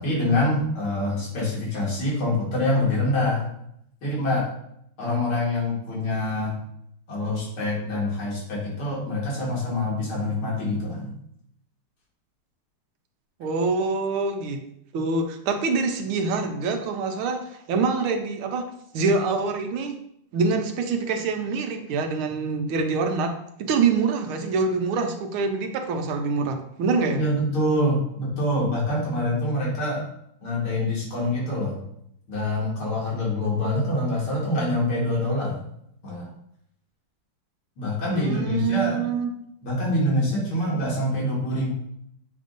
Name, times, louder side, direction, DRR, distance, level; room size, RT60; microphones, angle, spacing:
voice 1, 0.0-3.5 4.0-4.5 5.0-6.6 7.1-11.1 27.2-30.1 30.4-31.7 32.3-35.6 36.0-36.3 37.8-39.0 39.6-41.7, left 1 dB, 85° left, -5 dB, 2.9 m, -25 dB
voice 2, 13.4-14.6 14.9-18.7 18.9-20.0 20.3-23.3 23.6-27.2 38.1-39.3, right 4 dB, 85° right, 5 dB, 1.6 m, -25 dB
7.3 x 2.6 x 5.3 m, 0.73 s
omnidirectional pair, 2.3 m